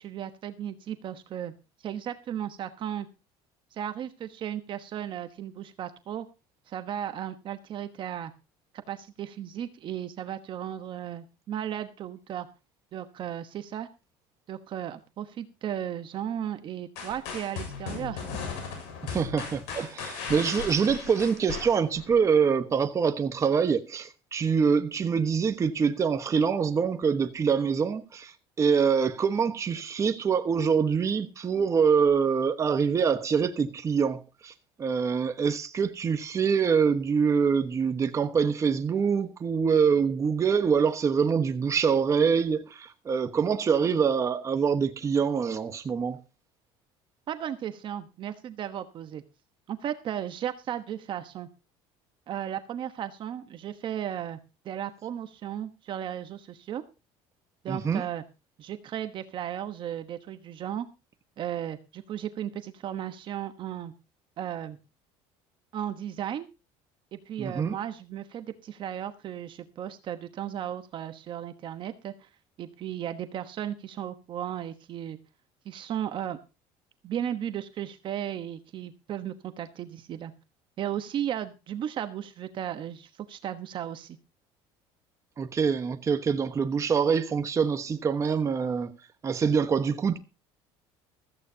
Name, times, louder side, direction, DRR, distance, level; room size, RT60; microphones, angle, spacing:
voice 1, 0.0-1.5 1.8-3.1 3.7-6.3 6.7-8.3 8.7-12.5 12.9-13.9 14.5-18.3 47.3-49.2 49.7-51.5 52.3-54.4 54.6-56.8 57.6-58.2 58.6-60.9 61.4-63.9 64.4-64.8 65.7-66.5 67.1-72.3 72.6-75.2 75.6-76.4 77.0-80.3 80.8-84.2, right 10 dB, 45° right, 1.2 m, -35 dB
sound 1, 17.0-22.2, left 5 dB, 85° left, 7.1 m, -37 dB
voice 2, 19.0-34.5 34.8-46.2 57.7-58.0 67.4-67.7 85.4-88.9 89.2-90.2, right 6 dB, 25° right, 1.2 m, -25 dB
15.5 x 14.0 x 2.8 m
cardioid pair, 130°, 12 cm